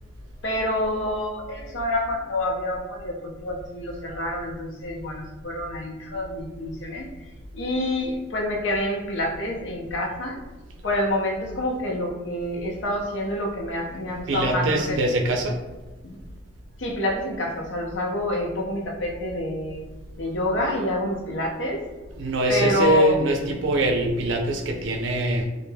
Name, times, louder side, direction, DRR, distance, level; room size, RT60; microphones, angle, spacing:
voice 1, 0.4-7.1 7.5-10.4 10.8-15.0 16.0-16.2 16.8-19.8 20.2-21.8 22.5-23.2, left 1 dB, 80° left, 0 dB, 0.5 m, -27 dB
voice 2, 14.3-15.6 22.2-25.4, right 1 dB, 85° right, 2 dB, 0.4 m, -23 dB
2.2 x 2.0 x 3.2 m, 1.2 s
head